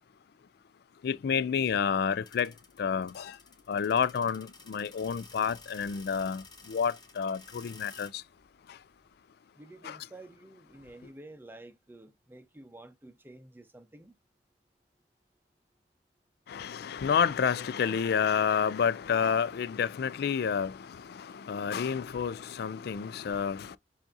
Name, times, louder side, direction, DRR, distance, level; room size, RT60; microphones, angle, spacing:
voice 1, 1.0-3.4 3.7-8.2 8.7-8.8 9.8-10.0 16.5-23.8, left 7 dB, 60° left, 0.3 m, -30 dB
sound 1, 2.2-9.1, left 4 dB, 25° left, 1.2 m, -54 dB
voice 2, 9.6-14.1, right 2 dB, 10° right, 0.6 m, -50 dB
7.1 x 2.6 x 2.6 m
head